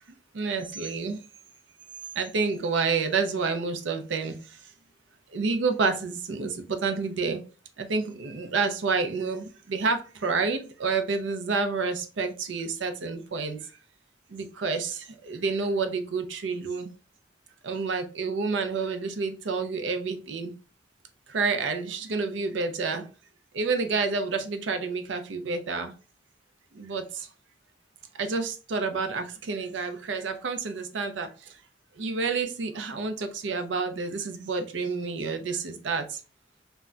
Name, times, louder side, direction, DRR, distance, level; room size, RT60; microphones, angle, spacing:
voice 1, 0.3-1.2 2.2-4.7 5.3-7.4 7.8-13.7 14.3-16.9 17.6-20.5 21.3-23.1 23.5-25.9 26.7-27.3 28.2-31.6 32.0-36.2, right 4 dB, 90° right, 8 dB, 0.5 m, -29 dB
2.2 x 2.1 x 3.7 m, 0.35 s
head